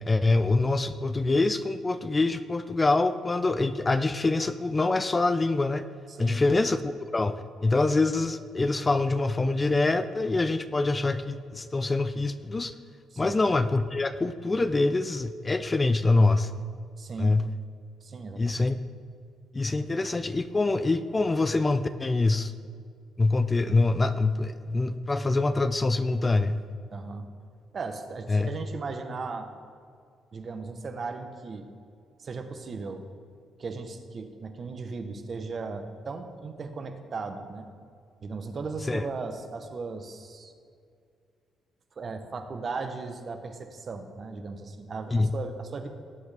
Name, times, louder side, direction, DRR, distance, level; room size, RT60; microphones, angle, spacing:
voice 1, 0.0-5.8 6.2-12.7 13.2-16.5 17.2-17.5 18.4-18.8 19.5-22.5 23.2-26.6 28.3-28.5 38.9-39.1 45.1-45.3, left 3 dB, 25° left, 11 dB, 0.4 m, -25 dB
voice 2, 6.1-6.4 13.1-13.4 17.0-17.4 18.0-18.6 26.9-27.3 27.7-29.5 30.3-31.7 32.2-33.0 33.6-37.7 38.2-40.5 42.0-45.9, right 4 dB, 45° right, 7 dB, 1.1 m, -37 dB
18.0 x 7.8 x 3.5 m, 2.3 s
cardioid pair, 90°, 0 cm